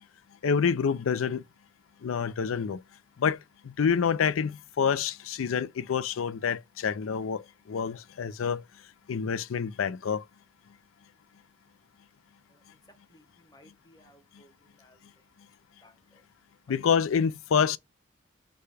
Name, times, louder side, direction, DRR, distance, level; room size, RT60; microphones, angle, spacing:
voice 1, 0.4-1.4 2.0-2.8 3.2-8.6 9.1-10.2 16.7-17.8, left 6 dB, 85° left, 0.4 m, -27 dB
voice 2, 12.5-15.3 15.8-16.2, left 1 dB, 20° left, 1.0 m, -60 dB
4.8 x 2.3 x 4.8 m
head